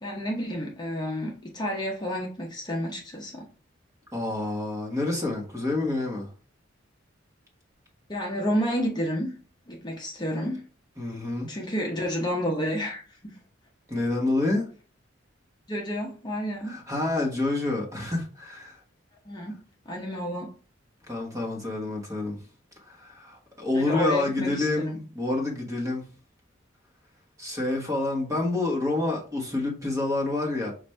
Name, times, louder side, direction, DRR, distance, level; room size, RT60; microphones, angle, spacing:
voice 1, 0.0-3.5 8.1-9.3 9.7-10.6 11.5-13.4 15.7-16.7 19.2-19.6 19.9-20.5 23.7-25.0, equal, 20° left, 0.8 m, -30 dB
voice 2, 4.1-6.3 11.0-11.5 13.9-14.7 16.6-18.8 21.1-22.4 22.8-26.0 27.4-30.7, left 2 dB, 15° right, 1.2 m, -28 dB
5.8 x 2.5 x 3.3 m
head